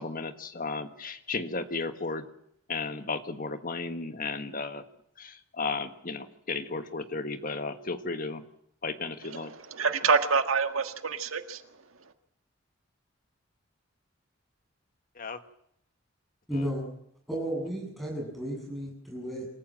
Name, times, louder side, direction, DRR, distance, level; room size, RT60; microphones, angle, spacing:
voice 1, 0.0-2.3 2.7-4.8 5.2-8.4 8.8-9.5 15.2-15.4 16.5-16.6, left 3 dB, 45° left, 9 dB, 1.5 m, -34 dB
voice 2, 9.3-11.6, right 5 dB, 85° right, 8 dB, 1.7 m, -27 dB
voice 3, 16.5-16.9 17.3-19.5, equal, ahead, 0 dB, 7.9 m, -33 dB
26.5 x 14.5 x 7.6 m, 0.74 s
head